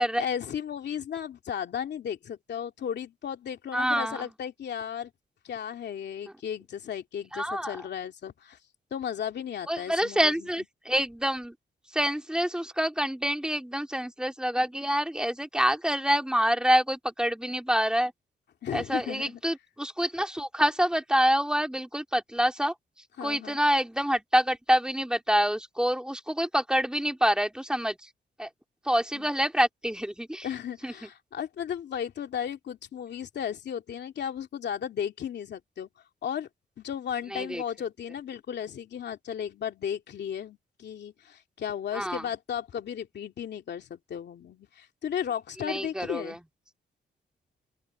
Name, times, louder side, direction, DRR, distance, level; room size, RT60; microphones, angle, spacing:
voice 1, 0.2-5.1 5.4-8.6 8.9-10.5 18.6-19.4 23.2-23.6 29.1-29.3 30.4-35.9 36.2-36.5 36.8-46.4, left 8 dB, 75° left, 2.6 m, -35 dB
voice 2, 3.7-4.3 7.3-7.7 9.7-11.5 11.9-18.1 18.7-22.7 23.2-28.0 28.4-28.5 28.9-30.5 30.8-30.9 37.3-37.6 41.9-42.2 45.6-46.4, equal, 5° right, 2.4 m, -26 dB
open air
cardioid pair, 100°, 18 cm